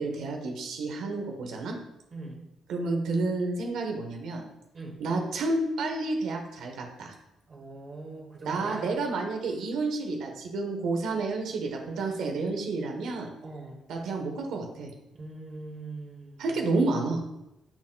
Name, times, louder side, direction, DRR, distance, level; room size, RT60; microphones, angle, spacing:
voice 1, 0.0-1.8 2.7-4.4 5.0-7.1 8.4-13.3 13.9-14.9 16.4-17.2, right 3 dB, 80° right, 2 dB, 1.1 m, -30 dB
voice 2, 2.1-2.4 4.7-5.0 7.5-8.9 13.4-13.8 15.2-16.6, right 3 dB, 45° right, -2 dB, 1.8 m, -42 dB
10.0 x 4.3 x 2.3 m, 0.91 s
cardioid pair, 90°, 0 cm